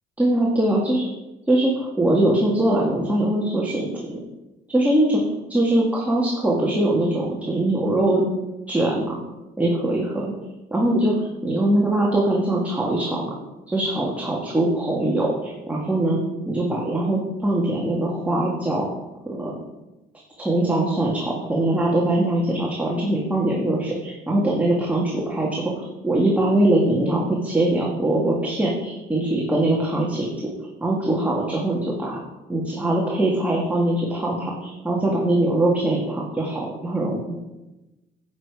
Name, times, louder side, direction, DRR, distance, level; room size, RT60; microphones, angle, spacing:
voice 1, 0.2-1.1 1.5-4.2 4.7-5.2 5.5-8.2 8.7-9.2 9.6-10.3 10.7-13.3 13.7-16.2 16.5-18.9 19.3-19.5 20.4-30.3 30.8-32.2 32.5-37.4, right 1 dB, 10° right, -4 dB, 1.9 m, -22 dB
10.5 x 8.5 x 4.9 m, 1.0 s
cardioid pair, 110°, 17 cm